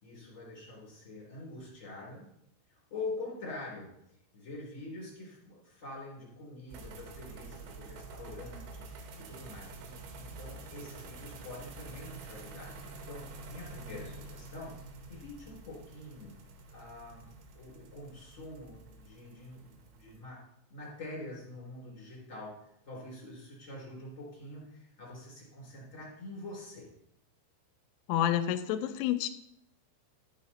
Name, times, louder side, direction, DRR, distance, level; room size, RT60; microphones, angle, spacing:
voice 1, 0.0-2.3 2.7-3.9 4.3-8.8 9.2-12.7 13.1-14.7 15.1-16.3 16.7-17.3 17.5-20.4 20.7-22.5 22.8-26.9, left 2 dB, 20° left, -5 dB, 2.7 m, -45 dB
sound 1, 6.7-20.2, right 3 dB, 75° right, 3.5 m, -48 dB
voice 2, 28.1-29.3, left 11 dB, 85° left, 10 dB, 3.0 m, -29 dB
12.5 x 5.7 x 4.1 m, 0.79 s
omnidirectional pair, 5.9 m